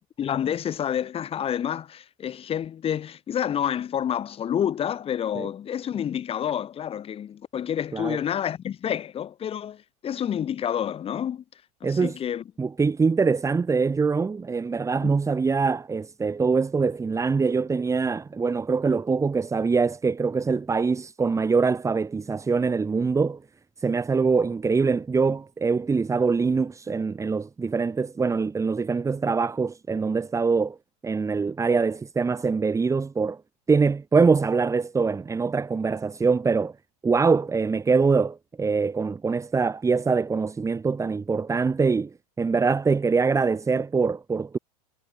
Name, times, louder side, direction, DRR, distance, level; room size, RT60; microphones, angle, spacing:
voice 1, 0.2-11.4 11.8-12.4 15.0-15.2, left 9 dB, 30° left, 3.4 m, -29 dB
voice 2, 11.8-12.2 12.6-23.4 23.8-30.8 31.0-33.4 33.7-36.7 37.0-42.1 42.4-44.6, right 4 dB, 15° right, 5.1 m, -23 dB
supercardioid pair, 130°, 20 cm